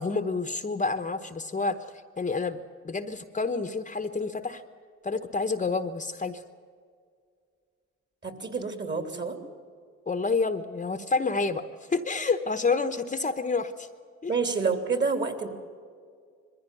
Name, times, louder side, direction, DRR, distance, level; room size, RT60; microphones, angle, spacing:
voice 1, 0.0-2.6 2.8-4.6 5.0-6.4 10.1-11.6 11.9-13.9 14.2-14.3, left 4 dB, 25° left, 10 dB, 1.0 m, -29 dB
voice 2, 8.2-9.4 14.3-15.5, right 4 dB, 35° right, 7 dB, 3.2 m, -28 dB
22.0 x 15.0 x 9.2 m, 2.1 s
cardioid pair, 90°, 30 cm